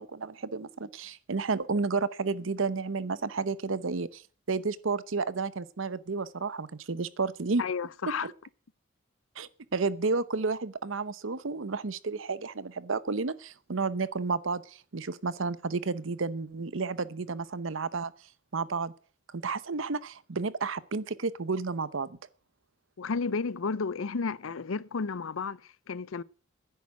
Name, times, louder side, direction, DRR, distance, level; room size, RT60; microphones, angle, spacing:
voice 1, 0.0-4.2 4.5-7.6 8.2-8.3 9.4-18.1 18.5-18.9 19.3-22.2, right 4 dB, 75° right, 0.8 m, -31 dB
voice 2, 7.6-8.3 23.0-26.2, left 5 dB, 85° left, 0.6 m, -32 dB
10.5 x 8.2 x 8.6 m
head